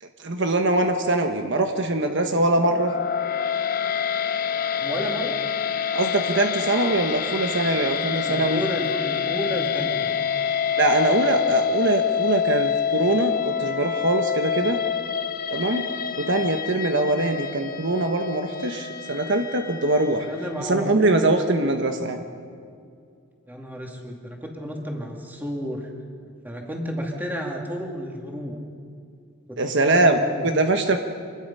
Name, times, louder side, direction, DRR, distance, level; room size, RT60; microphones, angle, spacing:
voice 1, 0.0-2.9 5.9-8.6 10.8-14.8 15.5-15.9 16.2-20.3 20.6-22.2 29.6-31.0, right 2 dB, 55° right, 5 dB, 1.2 m, -22 dB
sound 1, 2.3-20.6, left 8 dB, 40° left, 0.8 m, -27 dB
voice 2, 4.8-5.5 8.2-10.1 20.3-21.3 23.5-25.9 26.2-28.6 29.5-30.5, equal, 10° right, 0 dB, 2.6 m, -32 dB
26.5 x 20.5 x 5.6 m, 2.3 s
head